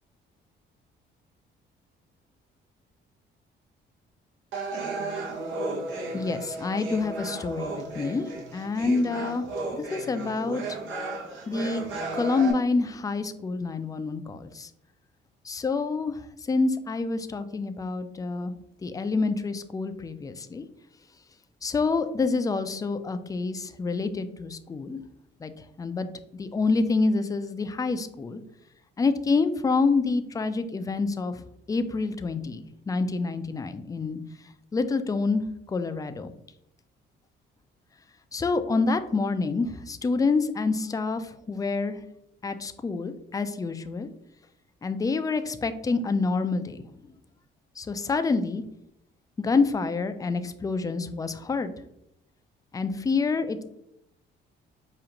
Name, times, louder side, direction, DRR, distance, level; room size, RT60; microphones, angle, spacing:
sound 1, 4.5-12.5, right 2 dB, 80° right, 0.9 m, -34 dB
voice 1, 6.1-9.5 9.7-10.6 11.5-11.8 12.1-14.7 15.5-16.2 16.5-18.5 18.8-20.6 21.6-25.0 25.4-25.5 25.8-26.1 26.3-28.4 29.0-31.3 31.7-34.2 34.7-35.4 35.7-36.3 38.3-42.0 42.4-44.1 44.8-46.8 47.8-48.6 49.4-51.7 52.7-53.6, left 4 dB, 20° left, 9 dB, 0.3 m, -27 dB
4.9 x 2.4 x 2.9 m, 0.79 s
cardioid pair, 90°, 20 cm